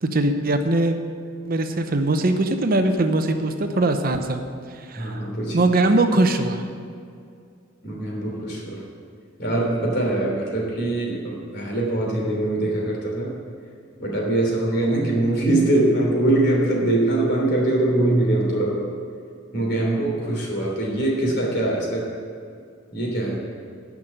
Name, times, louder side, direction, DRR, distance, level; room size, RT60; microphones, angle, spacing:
voice 1, 0.0-1.0 1.4-4.4 4.7-5.3 5.5-6.6, right 2 dB, 45° right, 6 dB, 0.7 m, -21 dB
voice 2, 5.0-5.7 7.8-8.8 9.4-13.3 14.0-18.9 19.5-22.1 22.9-23.4, right 1 dB, 55° left, -2 dB, 3.1 m, -22 dB
10.5 x 6.0 x 8.9 m, 2.3 s
head